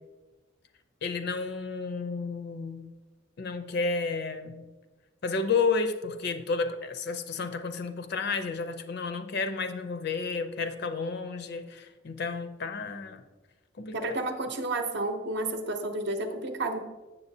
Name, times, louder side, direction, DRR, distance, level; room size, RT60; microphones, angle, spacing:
voice 1, 1.0-2.9 3.4-4.7 5.2-13.2 13.8-14.0, left 4 dB, 55° left, 9 dB, 0.5 m, -31 dB
voice 2, 13.9-16.8, right 2 dB, 60° right, 6 dB, 0.7 m, -31 dB
7.1 x 7.1 x 2.7 m, 1.2 s
head